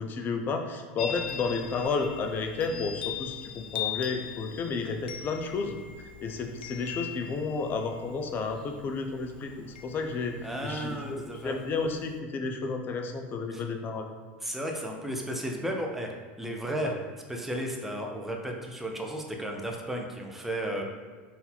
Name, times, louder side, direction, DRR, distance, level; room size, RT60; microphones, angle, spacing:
voice 1, 0.0-3.4 3.7-5.8 6.2-9.5 9.8-10.3 10.6-14.1 16.8-17.0, left 4 dB, 40° left, 5 dB, 0.6 m, -31 dB
Chime, 1.0-12.2, left 10 dB, 90° left, 0.4 m, -41 dB
voice 2, 10.4-11.6 13.5-13.6 14.4-17.0 17.3-20.8, right 1 dB, 5° right, 1 dB, 0.6 m, -34 dB
4.1 x 2.7 x 4.3 m, 1.5 s
supercardioid pair, 105°, 5 cm